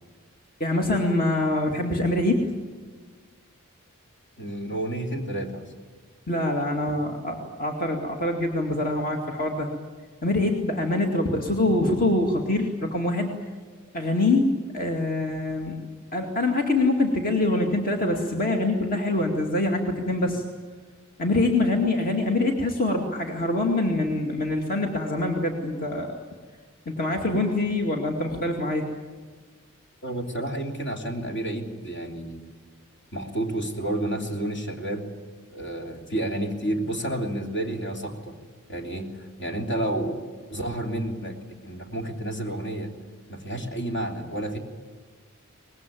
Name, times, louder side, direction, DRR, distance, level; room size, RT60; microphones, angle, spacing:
voice 1, 0.6-2.4 6.3-9.7 10.2-13.3 13.9-14.5 14.7-15.8 16.1-20.4 21.2-26.2 26.9-28.9, left 2 dB, 40° left, 2 dB, 2.3 m, -24 dB
voice 2, 4.4-5.7 6.9-7.0 30.0-32.4 33.1-35.1 35.5-38.4 38.7-40.2 40.5-41.4 41.6-42.9 43.3-44.6, right 1 dB, 55° left, 3 dB, 3.1 m, -30 dB
24.0 x 20.5 x 9.2 m, 1.4 s
head